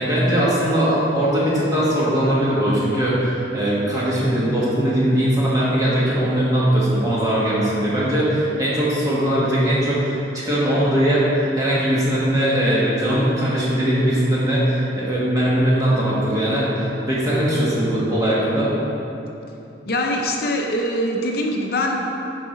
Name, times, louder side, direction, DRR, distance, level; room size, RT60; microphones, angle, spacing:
voice 1, 0.0-18.7, right 1 dB, 20° right, -8 dB, 1.7 m, -20 dB
voice 2, 19.9-22.1, left 1 dB, 55° left, 1 dB, 0.6 m, -23 dB
7.4 x 4.9 x 5.1 m, 2.9 s
head